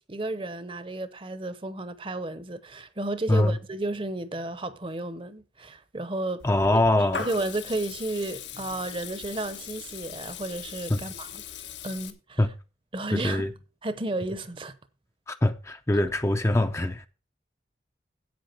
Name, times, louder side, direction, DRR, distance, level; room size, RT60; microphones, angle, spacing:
voice 1, 0.1-6.4 7.2-11.4 11.8-12.4 12.9-13.5 13.8-14.7, right 2 dB, 30° right, 0.8 m, -32 dB
Water tap faucet / Liquid, 6.4-12.1, left 7 dB, 85° left, 1.4 m, -39 dB
voice 2, 6.4-7.2 10.9-11.0 12.4-12.5 13.1-13.5 15.3-17.1, left 1 dB, 15° left, 0.5 m, -23 dB
10.5 x 8.5 x 4.5 m
head